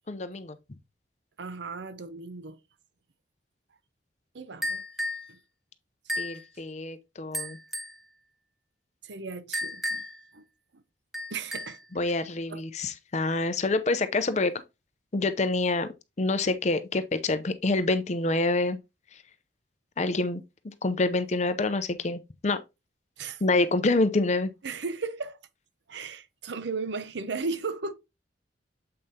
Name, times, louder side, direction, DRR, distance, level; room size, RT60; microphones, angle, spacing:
voice 1, 0.1-0.6 6.2-7.6 11.9-14.5 15.1-15.9 16.2-18.8 20.0-20.4 20.8-22.6 23.4-24.5, left 2 dB, 35° left, 0.6 m, -26 dB
voice 2, 1.4-2.6 4.3-4.8 5.3-5.4 6.1-6.2 9.0-10.0 10.3-10.4 10.7-10.8 11.3-11.8 12.5-12.6 23.2-23.4 24.6-25.4 25.9-27.9, right 4 dB, 70° right, 0.7 m, -35 dB
sound 1, 4.6-5.3 6.1-6.4 7.3-8.0 9.5-10.2 11.1-11.8, left 1 dB, ahead, 0.9 m, -33 dB
7.7 x 5.3 x 2.8 m
head